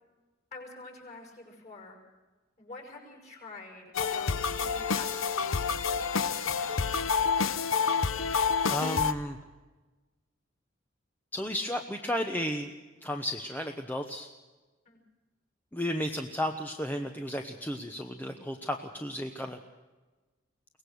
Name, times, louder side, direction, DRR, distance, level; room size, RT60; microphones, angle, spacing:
voice 1, 0.5-2.0 2.6-6.8 14.9-15.0, left 3 dB, 35° left, 2 dB, 5.6 m, -47 dB
sound 1, 3.9-9.1, left 5 dB, 80° left, 0.8 m, -28 dB
voice 2, 8.3-9.4 11.3-12.7 13.0-14.3 15.7-19.6, equal, 10° left, 4 dB, 1.0 m, -33 dB
23.0 x 19.0 x 6.5 m, 1.2 s
head